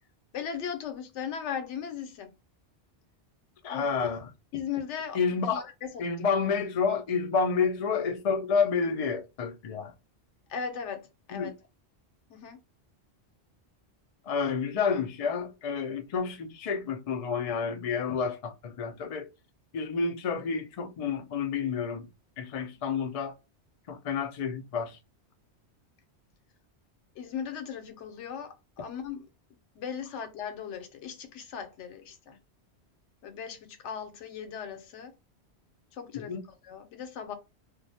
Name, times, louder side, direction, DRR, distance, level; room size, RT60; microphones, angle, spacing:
voice 1, 0.3-2.3 3.7-3.9 4.5-6.1 10.5-11.5 12.3-12.6 27.2-29.3 29.8-32.4 33.2-35.2 35.9-36.4 36.6-37.3, left 7 dB, 90° left, 0.9 m, -38 dB
voice 2, 3.6-4.3 5.1-5.6 6.0-9.9 11.3-11.5 14.3-19.2 19.7-22.1 22.4-23.3 23.9-25.0 36.3-36.4, left 5 dB, 70° left, 0.3 m, -29 dB
2.3 x 2.0 x 2.6 m
omnidirectional pair, 1.2 m